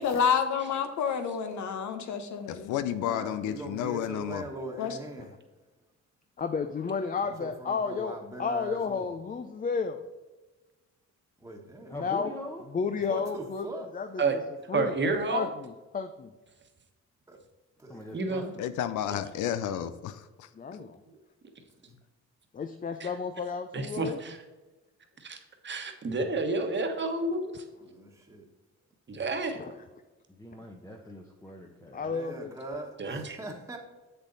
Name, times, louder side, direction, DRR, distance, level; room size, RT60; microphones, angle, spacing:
voice 1, 0.0-2.7 4.8-5.0, left 7 dB, 70° left, 8 dB, 1.1 m, -29 dB
voice 2, 2.5-4.5 18.6-20.5, left 10 dB, 85° left, 12 dB, 0.5 m, -32 dB
voice 3, 3.0-5.3 7.2-9.1 11.4-11.9 13.1-13.9 17.3-17.4 17.8-18.6 21.8-21.9 27.8-28.4 32.1-33.8, right 1 dB, 10° right, 0 dB, 1.4 m, -41 dB
voice 4, 6.4-10.0 12.0-12.3 12.7-13.7 13.9-14.2 14.7-16.3 20.6-21.0 22.5-24.2 29.5-29.7 31.9-32.5, left 5 dB, 30° left, 8 dB, 0.5 m, -32 dB
voice 5, 11.9-12.6 17.9-18.4 30.4-32.1, left 1 dB, 10° left, 0 dB, 0.9 m, -42 dB
voice 6, 14.7-15.5 18.1-18.4 23.0-23.1 23.7-24.4 25.2-25.4 25.6-27.5 29.1-29.6 33.0-33.4, right 3 dB, 40° right, 5 dB, 1.3 m, -30 dB
7.4 x 6.9 x 4.0 m, 1.2 s
cardioid pair, 90°, 30 cm